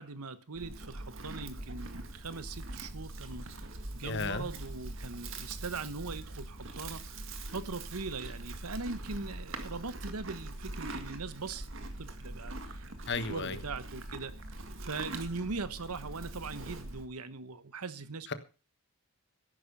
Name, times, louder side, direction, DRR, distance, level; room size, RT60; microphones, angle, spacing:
voice 1, 0.0-11.7 12.0-12.9 13.3-14.4 14.8-18.3, right 3 dB, 85° right, 1.2 m, -40 dB
Livestock farm animals working animals, 0.6-17.1, right 2 dB, 60° right, 2.0 m, -42 dB
voice 2, 4.0-4.4 13.1-13.6 18.3-18.4, left 4 dB, 50° left, 1.4 m, -34 dB
13.5 x 11.5 x 5.6 m
head